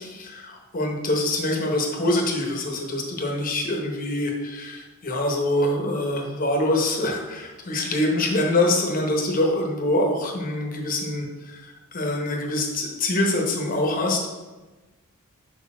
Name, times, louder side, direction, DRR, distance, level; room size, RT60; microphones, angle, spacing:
voice 1, 0.0-14.3, left 1 dB, 40° left, 1 dB, 1.0 m, -25 dB
6.5 x 4.1 x 4.3 m, 1.2 s
head